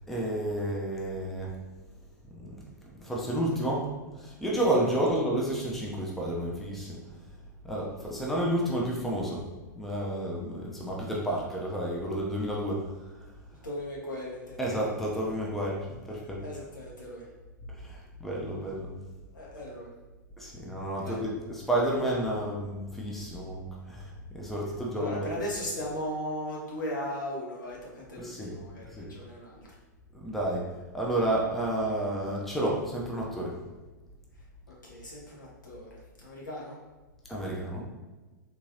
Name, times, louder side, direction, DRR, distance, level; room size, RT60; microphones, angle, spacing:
voice 1, 0.1-1.5 2.3-2.6 3.0-3.9 4.2-7.0 7.6-9.4 9.8-12.8 14.6-16.4 17.7-18.9 20.4-25.3 28.2-28.5 28.9-29.1 30.1-30.7 30.9-33.5 37.3-37.8, right 1 dB, ahead, -3 dB, 0.6 m, -30 dB
voice 2, 13.6-14.8 16.1-17.3 19.3-19.9 21.0-21.2 25.0-29.7 34.8-36.8, left 1 dB, 75° left, -4 dB, 1.1 m, -37 dB
3.6 x 2.8 x 2.7 m, 1.2 s
figure-of-eight pair, 100°, 10 cm